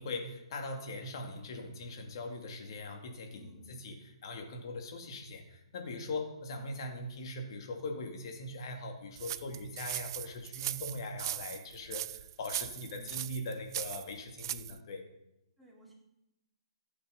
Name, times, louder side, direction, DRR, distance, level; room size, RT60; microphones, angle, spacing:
voice 1, 0.0-15.1, left 2 dB, 50° left, 3 dB, 2.4 m, -41 dB
voice 2, 3.3-3.7 12.9-13.2 15.6-15.9, right 3 dB, 5° right, -4 dB, 3.0 m, -57 dB
sound 1, 9.2-14.8, right 13 dB, 45° right, 0.4 m, -39 dB
14.0 x 8.3 x 5.1 m, 0.89 s
hypercardioid pair, 135°, 3 cm